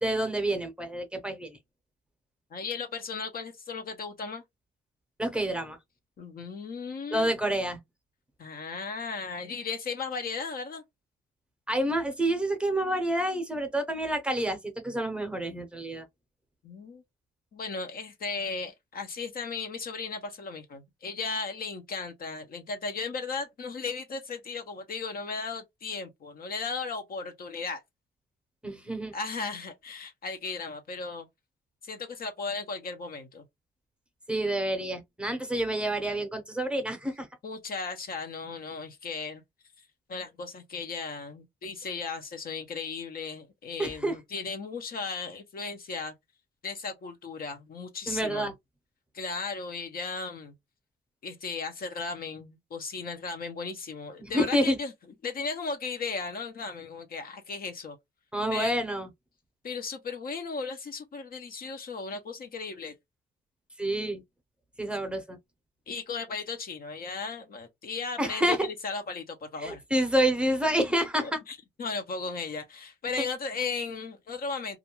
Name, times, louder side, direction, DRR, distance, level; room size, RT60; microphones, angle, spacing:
voice 1, 0.0-1.6 5.2-5.8 7.1-7.8 11.7-14.6 14.8-16.0 28.6-29.1 34.3-37.3 43.8-44.2 48.1-48.5 54.2-54.8 58.3-59.1 63.8-64.2 64.8-65.4 68.2-68.7 69.6-71.4, right 1 dB, 5° right, 0.7 m, -28 dB
voice 2, 2.5-4.4 6.2-7.3 8.4-10.8 16.6-17.0 17.5-27.8 29.1-31.3 31.8-33.4 37.4-39.4 40.1-46.1 46.6-48.5 49.1-50.5 51.2-54.9 55.2-58.0 58.5-58.8 59.6-62.9 65.9-69.8 71.2-74.8, left 4 dB, 50° left, 0.6 m, -36 dB
2.4 x 2.1 x 2.9 m
cardioid pair, 90°, 20 cm